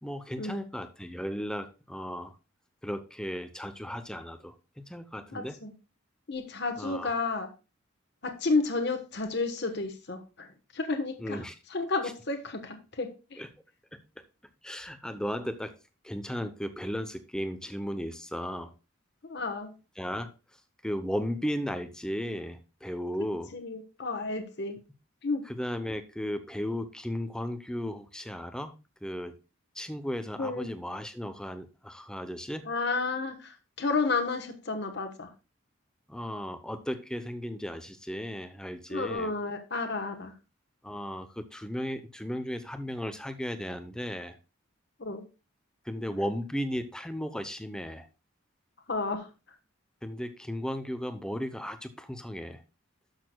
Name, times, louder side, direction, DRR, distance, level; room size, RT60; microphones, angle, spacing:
voice 1, 0.0-2.3 2.8-5.6 6.8-7.1 11.2-11.5 13.4-13.5 13.9-14.2 14.6-15.7 16.0-18.7 20.0-20.3 20.8-23.5 25.5-28.7 29.0-29.4 29.7-32.7 36.1-39.3 40.8-44.4 45.8-48.1 50.0-52.6, equal, 5° left, 9 dB, 0.7 m, -35 dB
voice 2, 5.3-5.7 6.3-7.5 8.2-10.5 10.7-11.4 11.7-13.4 19.3-19.7 23.5-24.8 25.2-25.4 30.4-30.7 32.7-35.3 38.9-40.3 45.0-45.2 48.9-49.3, left 3 dB, 55° left, 6 dB, 1.2 m, -31 dB
12.5 x 6.7 x 2.2 m, 0.30 s
head